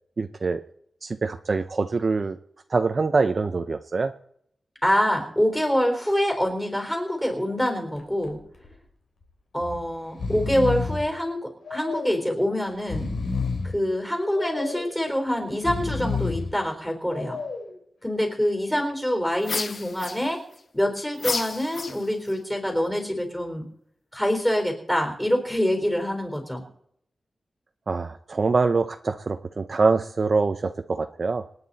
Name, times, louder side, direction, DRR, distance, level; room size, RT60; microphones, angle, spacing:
voice 1, 0.2-0.6 1.0-2.4 2.7-4.1 27.9-31.4, right 4 dB, 40° right, 8 dB, 0.7 m, -24 dB
voice 2, 4.8-8.4 9.5-13.1 13.7-17.4 18.0-20.4 20.7-23.7 24.1-26.6, equal, 10° left, 3 dB, 4.1 m, -25 dB
Breathing, 8.0-8.3 8.6-8.7 9.6-9.8 10.1-11.1 11.7-12.3 12.8-13.8 14.4-15.0 15.5-16.5 17.1-17.7, left 4 dB, 75° left, 3.8 m, -30 dB
sound 1, 19.4-20.6 21.2-22.4, left 4 dB, 45° left, 0.7 m, -31 dB
26.5 x 9.4 x 4.1 m, 0.69 s
wide cardioid pair, 160°, 0 cm